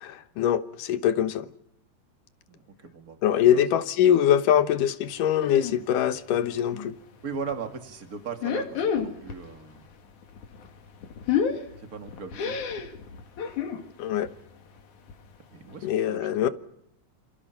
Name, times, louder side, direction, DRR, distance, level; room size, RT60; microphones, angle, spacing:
voice 1, 0.0-1.5 3.2-6.9 14.0-14.3 15.8-16.5, left 10 dB, 90° left, 2.8 m, -23 dB
voice 2, 2.5-3.6 7.2-9.8 11.8-12.6 15.5-16.5, right 6 dB, 30° right, 2.1 m, -38 dB
sound 1, 5.4-5.8 6.2-6.9 7.3-7.6 8.3-9.5 9.8-13.8 14.2-14.5 14.8-14.9 15.1-15.2 15.7-15.8, left 7 dB, 70° left, 3.6 m, -30 dB
28.0 x 28.0 x 5.8 m
omnidirectional pair, 3.7 m